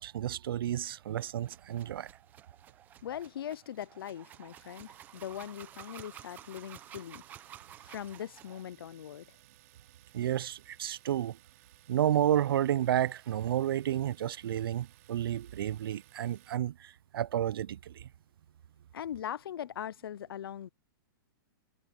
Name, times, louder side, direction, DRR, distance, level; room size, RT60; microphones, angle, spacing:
voice 1, 0.0-2.1 10.1-11.4 11.9-18.0, right 11 dB, 80° right, 0.4 m, -31 dB
sound 1, 0.7-8.6, right 11 dB, 15° right, 0.8 m, -52 dB
voice 2, 3.0-7.2 7.8-9.4 18.9-20.7, left 10 dB, 85° left, 0.6 m, -41 dB
Domestic sounds home sounds, 4.6-16.6, right 19 dB, 40° right, 4.1 m, -62 dB
hypercardioid pair, 170°, 12 cm